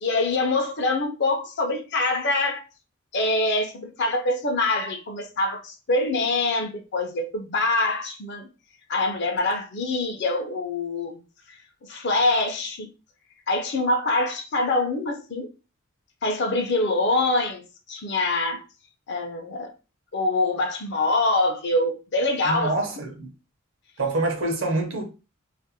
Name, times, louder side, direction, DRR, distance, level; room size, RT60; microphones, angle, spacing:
voice 1, 0.0-2.6 3.1-8.5 8.9-11.2 11.9-12.9 13.5-15.5 16.2-17.6 17.9-18.6 19.1-19.7 20.1-22.8, left 2 dB, 55° left, 0.5 m, -24 dB
voice 2, 22.4-23.3 24.0-25.0, right 2 dB, 65° right, 0.7 m, -26 dB
2.5 x 2.1 x 2.7 m
head